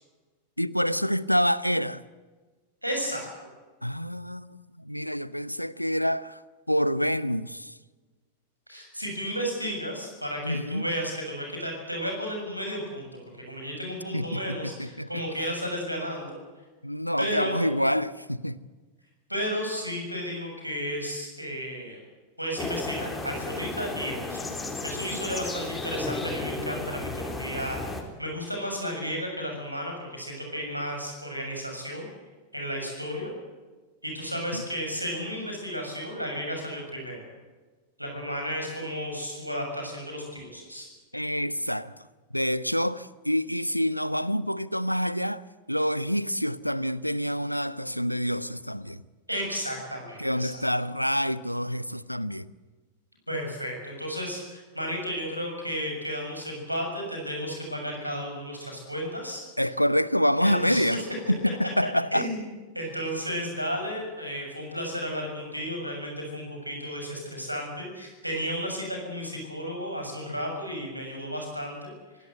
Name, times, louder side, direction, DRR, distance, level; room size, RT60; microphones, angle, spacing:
voice 1, 0.6-2.0 3.8-6.4 6.7-7.7 10.4-10.9 14.1-15.2 16.8-18.6 34.5-34.6 41.1-41.9 42.3-49.0 50.2-52.5 59.6-61.0 61.3-62.3, equal, 90° left, 0.7 m, -27 dB
voice 2, 2.8-3.3 8.7-16.4 17.2-17.6 19.3-22.0 22.4-24.4 24.8-32.1 32.5-33.3 34.0-37.3 38.0-40.9 49.3-50.6 53.3-59.4 60.4-61.0 62.1-62.4 62.7-71.9, equal, 90° right, 7.0 m, -33 dB
sound 1, 22.6-28.0, left 3 dB, 10° left, 3.9 m, -34 dB
25.0 x 17.5 x 7.9 m
figure-of-eight pair, 90°, 0 cm